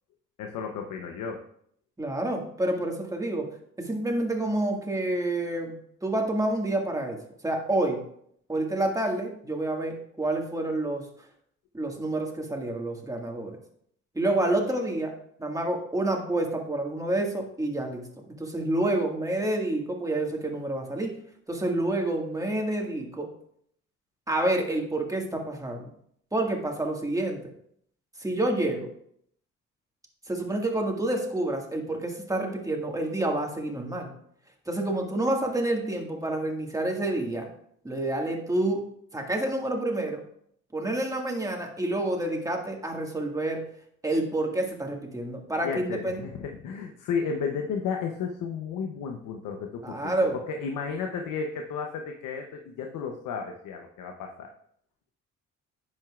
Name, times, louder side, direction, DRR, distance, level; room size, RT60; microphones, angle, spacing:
voice 1, 0.4-1.4 45.6-54.5, left 6 dB, 90° left, 3 dB, 0.9 m, -33 dB
voice 2, 2.0-3.5 3.8-5.8 6.0-8.0 8.5-11.0 11.7-13.6 14.1-15.1 15.4-18.1 18.4-21.2 21.5-23.3 24.3-25.9 26.3-27.4 28.2-28.9 30.3-34.1 34.7-37.5 37.8-38.8 39.1-40.2 40.7-43.6 44.0-46.2 49.8-50.4, right 1 dB, 10° right, 1 dB, 1.9 m, -28 dB
10.5 x 7.6 x 2.5 m, 0.67 s
cardioid pair, 90°, 30 cm